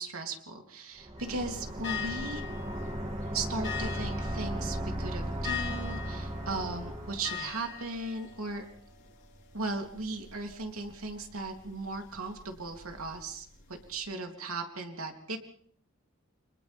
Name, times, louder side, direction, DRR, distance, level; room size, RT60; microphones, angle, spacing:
voice 1, 0.0-2.4 3.3-8.6 9.5-15.4, right 3 dB, 85° right, 3 dB, 3.3 m, -37 dB
sound 1, 1.0-7.5, right 1 dB, 30° right, 2.7 m, -36 dB
sound 2, 1.2-14.0, left 8 dB, 55° left, 3.8 m, -44 dB
29.5 x 26.0 x 3.6 m, 0.62 s
head